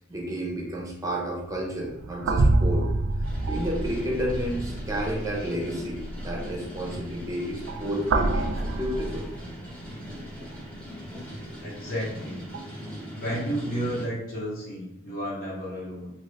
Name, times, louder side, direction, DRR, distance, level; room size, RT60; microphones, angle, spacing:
voice 1, 0.1-2.9 3.5-9.3, equal, 20° right, -2 dB, 0.6 m, -31 dB
sound 1, 1.5-9.9 10.4-10.6 12.5-12.6, right 2 dB, 85° right, 0.3 m, -28 dB
sound 2, 3.2-14.0, equal, 5° left, 1.0 m, -40 dB
voice 2, 11.3-12.4 13.1-16.1, equal, 50° left, -8 dB, 1.1 m, -32 dB
2.8 x 2.5 x 3.2 m, 0.84 s
head